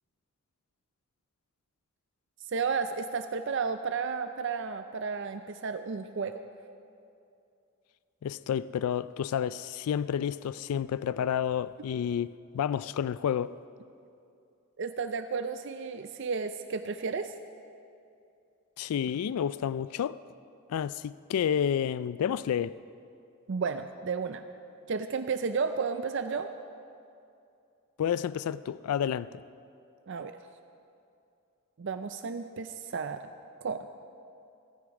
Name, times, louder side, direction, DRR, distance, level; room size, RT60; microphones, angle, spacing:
voice 1, 2.4-6.4 14.8-17.3 23.5-24.4 24.9-26.5 30.1-30.4 31.8-33.2 33.6-33.9, right 5 dB, 55° right, 0.4 m, -32 dB
voice 2, 8.2-13.6 18.8-20.2 20.7-22.8 28.0-29.4, left 8 dB, 90° left, 0.3 m, -30 dB
16.0 x 14.5 x 4.8 m
head